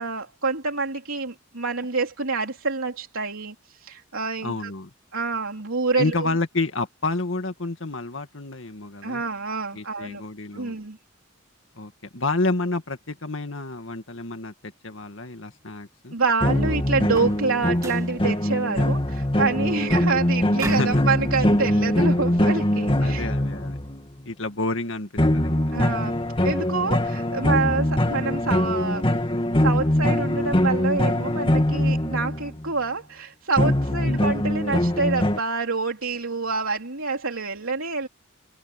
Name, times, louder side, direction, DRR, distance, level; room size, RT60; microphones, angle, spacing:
voice 1, 0.0-4.7 5.1-6.1 9.0-10.2 10.5-11.0 16.1-23.3 25.7-26.2 26.4-29.1 29.6-38.1, right 4 dB, 90° right, 3.4 m, -27 dB
voice 2, 4.4-4.9 6.0-9.2 9.7-10.7 11.8-16.1 19.7-19.9 20.6-21.0 23.0-23.8 24.3-25.6 34.0-34.2, left 2 dB, 65° left, 2.1 m, -29 dB
sound 1, 16.4-24.0 25.2-32.7 33.6-35.4, left 1 dB, 25° left, 2.3 m, -22 dB
sound 2, 17.0-17.5 17.8-18.2 20.6-21.0, right 2 dB, 15° right, 2.8 m, -35 dB
head